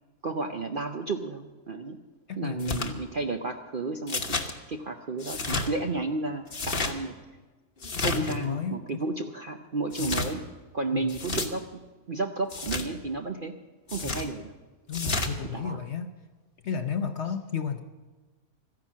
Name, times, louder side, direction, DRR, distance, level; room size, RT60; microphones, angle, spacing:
voice 1, 0.2-2.0 2.4-7.1 8.0-10.4 10.7-13.6 13.9-14.5 15.5-15.8, right 3 dB, 50° right, 4 dB, 0.6 m, -32 dB
voice 2, 2.3-3.0 8.0-8.8 10.0-10.2 10.9-11.1 14.0-14.3 14.9-16.1 16.6-17.8, left 7 dB, 55° left, 7 dB, 0.8 m, -33 dB
sound 1, 2.6-2.9 4.1-4.5 5.2-5.7 6.5-6.9 7.8-8.4 9.9-10.3 11.1-11.5 12.5-12.9 13.9-14.3 14.9-15.3, left 3 dB, 40° left, 1.2 m, -30 dB
14.5 x 11.0 x 7.3 m, 1.3 s
omnidirectional pair, 1.7 m